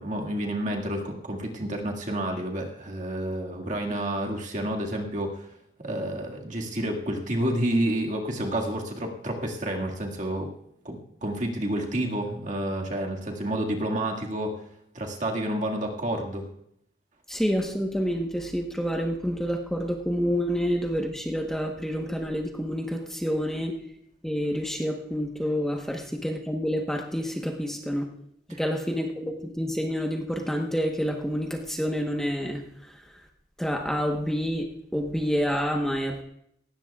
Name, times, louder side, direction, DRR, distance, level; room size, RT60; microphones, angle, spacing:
voice 1, 0.0-5.5 5.8-10.5 10.8-14.5 14.9-16.5 28.5-28.6, right 1 dB, 45° right, 0 dB, 2.0 m, -29 dB
voice 2, 17.3-23.7 24.2-28.1 28.5-33.0 33.6-34.7 34.9-36.2, equal, 5° left, 1 dB, 1.1 m, -28 dB
18.5 x 16.5 x 2.4 m, 0.72 s
head